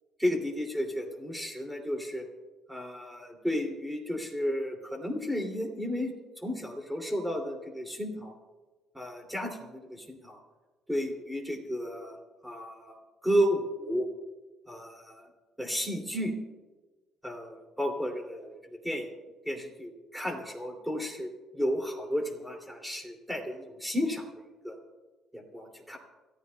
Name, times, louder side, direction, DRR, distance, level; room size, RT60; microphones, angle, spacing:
voice 1, 0.2-2.2 2.7-6.1 6.4-8.3 8.9-10.4 10.9-12.2 12.4-14.1 14.7-15.3 15.6-16.3 17.2-19.1 19.4-24.8 25.3-26.0, equal, 5° right, 2 dB, 2.6 m, -33 dB
29.5 x 13.5 x 2.3 m, 1.2 s
cardioid pair, 130°, 0 cm